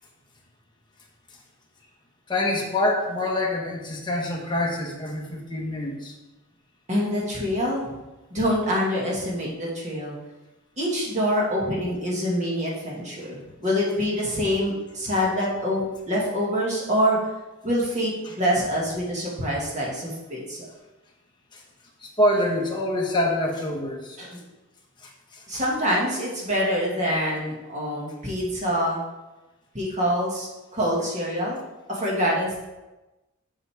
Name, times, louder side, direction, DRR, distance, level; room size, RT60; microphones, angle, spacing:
voice 1, 2.3-6.1 18.2-18.3 21.5-21.6 22.0-24.2 25.0-25.6, left 1 dB, 20° left, -1 dB, 1.2 m, -26 dB
voice 2, 6.9-8.0 8.3-10.2 10.8-17.2 17.6-20.7 24.2-24.4 25.5-29.0 29.7-31.6 31.9-32.6, equal, 35° right, -4 dB, 1.9 m, -25 dB
7.3 x 6.8 x 3.5 m, 1.1 s
head